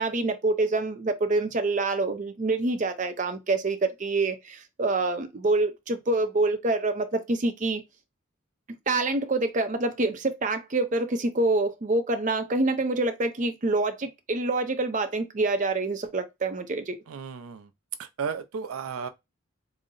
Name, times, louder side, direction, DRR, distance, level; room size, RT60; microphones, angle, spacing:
voice 1, 0.0-7.8 8.9-17.0, right 2 dB, 35° right, 0.5 m, -26 dB
voice 2, 17.1-17.7 18.0-19.1, right 6 dB, 90° right, 0.4 m, -34 dB
3.9 x 2.1 x 3.8 m
head